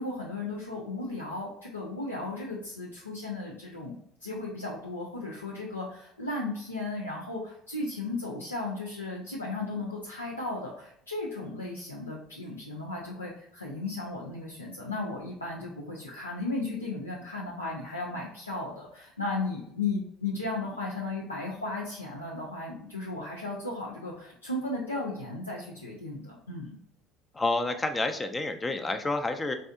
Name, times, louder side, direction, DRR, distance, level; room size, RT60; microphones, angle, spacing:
voice 1, 0.0-26.8, left 2 dB, 90° left, -4 dB, 0.5 m, -35 dB
voice 2, 27.3-29.5, left 2 dB, 20° left, 7 dB, 0.4 m, -29 dB
4.2 x 2.6 x 2.3 m, 0.72 s
figure-of-eight pair, 60°, 0 cm